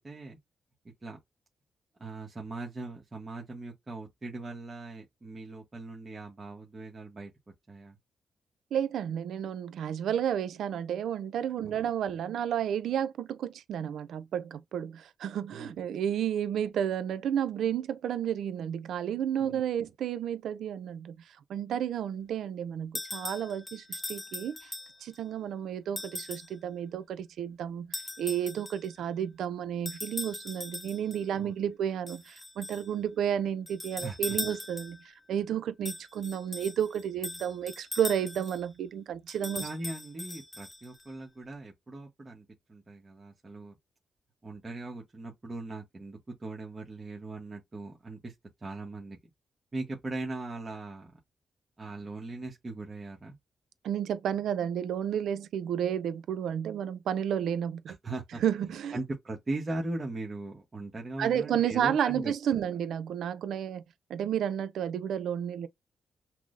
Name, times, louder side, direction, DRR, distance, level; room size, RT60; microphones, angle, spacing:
voice 1, 0.0-0.4 1.0-1.2 2.0-7.3 7.7-8.0 11.6-12.2 15.5-15.7 19.4-19.6 31.4-31.5 34.0-34.2 39.6-43.7 44.4-48.3 48.6-49.2 49.7-51.1 51.8-53.4 57.9-58.4 58.9-62.6, right 2 dB, 30° right, 0.9 m, -39 dB
voice 2, 8.7-21.2 21.5-24.7 25.0-35.0 35.3-39.7 53.8-58.0 58.4-59.0 61.2-63.8 64.1-65.7, right 9 dB, 85° right, 0.3 m, -31 dB
sound 1, 23.0-25.2 26.0-26.6 27.9-28.9 29.9-31.2 32.1-32.9 33.7-35.1 35.9-38.6 39.3-41.0, left 2 dB, 20° left, 0.7 m, -40 dB
5.8 x 2.0 x 2.4 m
cardioid pair, 80°, 0 cm